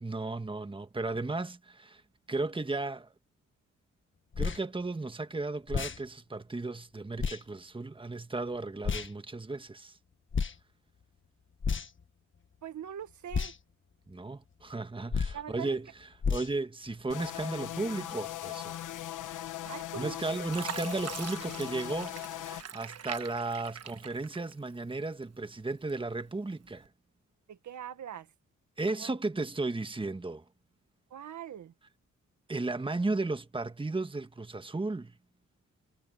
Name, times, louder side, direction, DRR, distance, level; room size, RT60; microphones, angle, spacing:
voice 1, 0.0-2.0 2.3-3.1 4.4-10.0 14.1-15.9 16.3-18.8 20.0-26.9 28.8-30.4 32.5-35.1, right 3 dB, 15° right, 1.4 m, -35 dB
sound 1, 4.3-4.6 5.7-6.0 7.2-7.4 8.8-9.1 10.3-10.6 11.6-12.0 13.3-13.5 15.1-15.4 16.2-16.5, left 5 dB, 40° left, 1.5 m, -31 dB
voice 2, 12.6-13.5 15.3-15.8 19.6-20.2 27.5-28.3 29.0-29.1 31.1-31.7, right 9 dB, 75° right, 1.7 m, -42 dB
sound 2, 17.1-22.6, left 12 dB, 85° left, 1.3 m, -39 dB
Fill (with liquid), 19.8-20.1 20.5-24.9 25.3-26.2 26.7-26.9, right 8 dB, 55° right, 1.3 m, -43 dB
cardioid pair, 70°, 30 cm